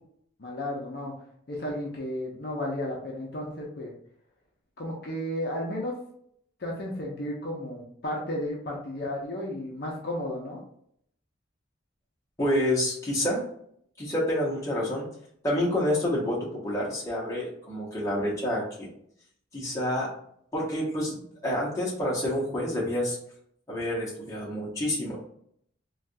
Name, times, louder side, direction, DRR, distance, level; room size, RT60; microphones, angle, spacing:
voice 1, 0.4-1.1 1.5-3.9 4.8-5.9 6.6-10.6, left 1 dB, 55° left, -2 dB, 0.6 m, -33 dB
voice 2, 12.4-13.4 14.0-15.1 15.4-18.9 19.5-20.1 20.5-23.2 23.7-25.2, left 1 dB, 15° left, -5 dB, 1.0 m, -28 dB
3.3 x 2.3 x 2.6 m, 0.67 s
head